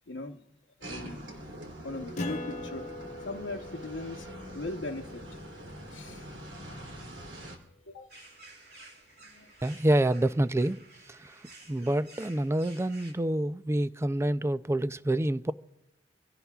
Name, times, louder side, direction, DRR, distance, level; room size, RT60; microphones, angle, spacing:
voice 1, 0.1-0.4 0.8-1.2 1.8-2.9 3.2-4.3 4.5-5.3 5.9-6.3 7.9-8.1 8.5-8.6 9.2-9.5, left 2 dB, 90° left, 0.9 m, -39 dB
sound 1, 0.8-7.6, right 1 dB, 85° right, 2.9 m, -44 dB
Acoustic guitar, 2.2-7.1, left 2 dB, 40° left, 1.3 m, -43 dB
sound 2, 8.1-13.1, right 2 dB, 65° right, 3.7 m, -53 dB
voice 2, 9.6-10.8 11.1-11.4 11.7-15.5, right 1 dB, 15° right, 0.4 m, -27 dB
26.0 x 16.5 x 2.3 m
head